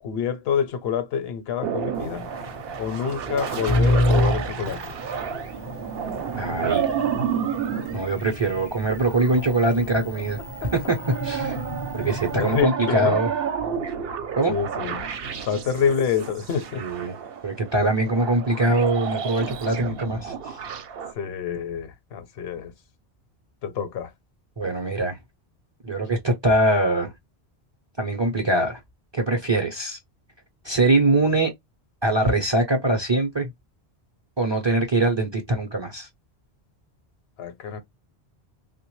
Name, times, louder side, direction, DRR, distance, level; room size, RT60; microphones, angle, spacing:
voice 1, 0.0-2.3 2.8-4.8 10.6-10.7 12.4-13.2 14.5-15.1 15.5-16.8 21.2-22.7 23.6-24.1 37.4-37.8, left 7 dB, 70° left, 0.8 m, -27 dB
sound 1, 1.6-21.1, right 7 dB, 65° right, 0.8 m, -31 dB
sound 2, 1.9-12.6, left 1 dB, 40° left, 0.4 m, -29 dB
voice 2, 6.4-6.9 7.9-10.4 10.7-11.6 11.9-13.3 14.4-14.6 16.8-17.2 17.4-20.6 24.6-25.2 25.8-27.1 28.0-28.8 29.1-30.0 30.6-31.5 32.0-33.5 34.4-36.1, right 2 dB, 35° right, 0.5 m, -23 dB
3.4 x 2.1 x 3.0 m
omnidirectional pair, 1.1 m